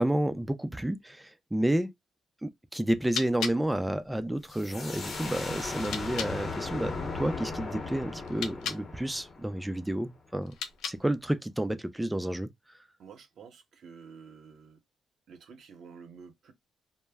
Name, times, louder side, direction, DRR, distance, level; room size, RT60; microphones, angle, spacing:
voice 1, 0.0-1.9 2.4-10.5 10.9-12.5, right 1 dB, 5° right, 0.5 m, -30 dB
sound 1, 2.8-6.4 8.2-8.9 10.4-11.2, left 7 dB, 80° left, 0.5 m, -39 dB
sound 2, 4.5-10.0, left 3 dB, 40° left, 0.9 m, -37 dB
voice 2, 13.0-14.8 15.3-16.5, right 6 dB, 65° right, 0.8 m, -50 dB
2.1 x 2.1 x 3.4 m
cardioid pair, 90°, 0 cm